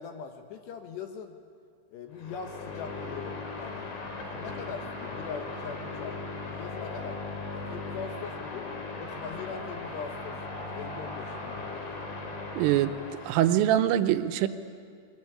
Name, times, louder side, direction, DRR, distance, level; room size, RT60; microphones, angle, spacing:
voice 1, 0.0-1.4 1.9-3.9 4.2-8.7 9.0-10.4 10.7-12.1, left 6 dB, 70° left, 5 dB, 3.0 m, -41 dB
sound 1, 2.1-13.7, left 3 dB, 45° left, 4.5 m, -38 dB
voice 2, 12.6-13.0 13.3-14.5, right 12 dB, 80° right, 9 dB, 3.3 m, -23 dB
23.5 x 22.0 x 9.8 m, 2.1 s
omnidirectional pair, 5.8 m